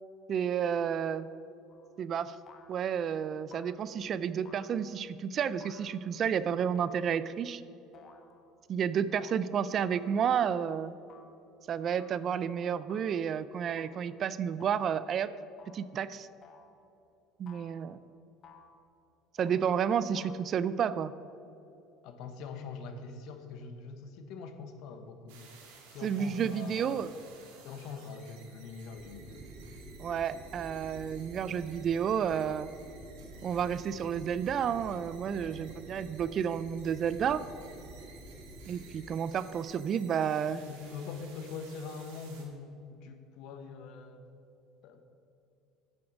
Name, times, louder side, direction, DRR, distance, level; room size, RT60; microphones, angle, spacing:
voice 1, 0.3-1.3 2.0-2.3 2.7-7.6 8.7-10.9 11.7-15.3 15.7-16.3 17.4-18.0 19.4-21.1 26.0-27.1 30.0-32.7 33.4-37.4 38.7-40.6, right 8 dB, 40° right, 15 dB, 0.3 m, -31 dB
sound 1, 1.7-2.0 2.5-3.0 3.5-4.0 4.4-5.0 5.6-6.2 6.7-7.5 7.9-8.5 9.1-9.4 9.9-10.4 11.1-11.4 12.0-12.3 12.9-13.3 13.8-14.1 14.6-15.0 15.6-16.0 16.4-16.8 17.5-17.9 18.4-18.8 19.4-19.7 20.1-20.4, left 5 dB, 40° left, 1.0 m, -56 dB
voice 2, 22.0-25.6 25.9-27.1 27.6-29.5 40.4-44.2 44.8-45.0, left 5 dB, 65° left, 7 dB, 1.0 m, -43 dB
sound 2, 25.3-42.4, right 5 dB, 90° right, 2.0 m, -56 dB
sound 3, 29.0-39.0, right 2 dB, 15° right, 1.9 m, -49 dB
7.9 x 7.1 x 6.0 m, 2.8 s
supercardioid pair, 120°, 0 cm